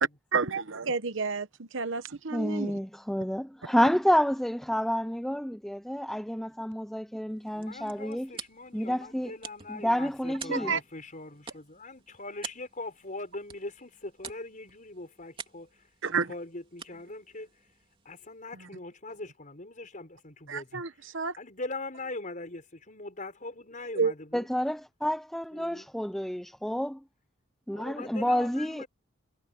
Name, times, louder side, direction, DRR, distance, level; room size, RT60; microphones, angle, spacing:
voice 1, 0.3-2.8 10.5-10.8 16.0-16.3 20.5-21.4 24.0-24.1, right 5 dB, 60° right, 1.1 m, -30 dB
voice 2, 2.3-8.3 8.7-9.3 9.7-10.7 24.3-27.0 27.7-28.8, equal, ahead, 0.6 m, -29 dB
sound 1, 7.3-18.5, right 6 dB, 25° right, 3.1 m, -48 dB
voice 3, 7.5-15.9 16.3-17.7 18.0-20.8 21.4-24.5 25.5-25.9 27.7-28.9, left 2 dB, 40° left, 4.9 m, -41 dB
head